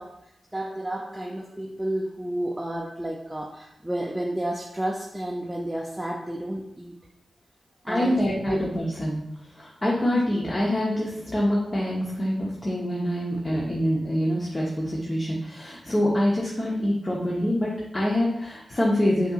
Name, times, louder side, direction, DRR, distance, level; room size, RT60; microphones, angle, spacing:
voice 1, 0.0-6.9 7.8-8.6 10.1-10.2, right 1 dB, 10° right, -1 dB, 0.4 m, -31 dB
voice 2, 7.9-9.2 9.5-19.3, left 1 dB, 35° left, -4 dB, 0.8 m, -25 dB
5.2 x 2.8 x 2.3 m, 0.83 s
cardioid pair, 50°, 0 cm